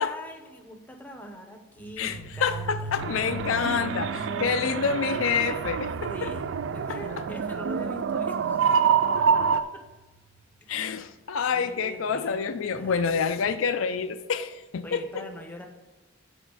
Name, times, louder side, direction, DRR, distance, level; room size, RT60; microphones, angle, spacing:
voice 1, 0.0-3.0 3.7-4.8 6.1-6.4 6.7-9.8 10.6-11.0 11.5-13.0 14.8-15.7, equal, 10° left, 3 dB, 0.7 m, -43 dB
sound 1, 1.8-10.2, right 1 dB, 80° right, 1.3 m, -42 dB
voice 2, 2.0-6.3 6.9-7.0 10.7-15.2, left 6 dB, 80° left, 9 dB, 0.4 m, -28 dB
sound 2, 3.0-9.6, right 6 dB, 65° right, 0.3 m, -27 dB
6.1 x 4.4 x 6.2 m, 1.2 s
head